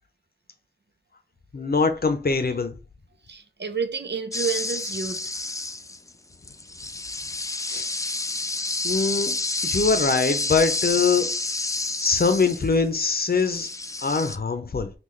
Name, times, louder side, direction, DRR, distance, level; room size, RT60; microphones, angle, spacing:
voice 1, 1.5-2.7 7.7-7.9 8.8-9.4 9.6-11.4 12.0-13.7 14.0-14.9, left 4 dB, 55° left, 0.6 m, -23 dB
voice 2, 3.3-5.2 12.2-12.4, right 5 dB, 65° right, 0.6 m, -30 dB
sound 1, 4.3-6.1 6.4-12.9 13.2-14.4, left 2 dB, 15° left, 0.3 m, -29 dB
3.7 x 2.4 x 3.1 m
wide cardioid pair, 40°, 19 cm